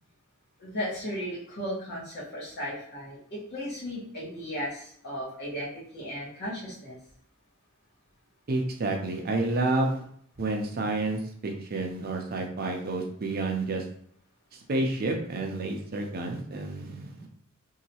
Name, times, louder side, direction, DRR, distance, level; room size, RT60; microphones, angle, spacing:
voice 1, 0.6-7.0, equal, 55° left, -6 dB, 1.4 m, -35 dB
voice 2, 8.5-10.0 10.4-13.8 14.5-17.3, right 2 dB, 45° right, 2 dB, 0.5 m, -30 dB
3.0 x 2.8 x 2.8 m, 0.63 s
head